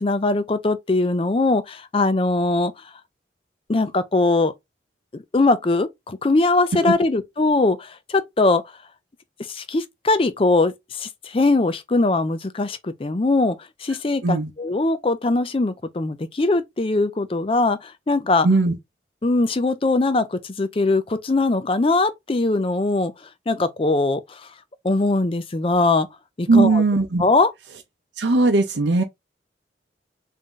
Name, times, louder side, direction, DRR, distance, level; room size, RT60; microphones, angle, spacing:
voice 1, 0.0-2.7 3.7-4.5 5.3-8.6 9.5-13.6 13.8-18.5 19.2-23.1 23.5-24.4 24.8-26.1 26.4-26.8 27.2-27.5, left 2 dB, 30° left, 0.5 m, -21 dB
voice 2, 18.4-18.7 26.5-27.2 28.2-29.0, right 3 dB, 75° right, 0.7 m, -18 dB
3.6 x 2.6 x 3.7 m
head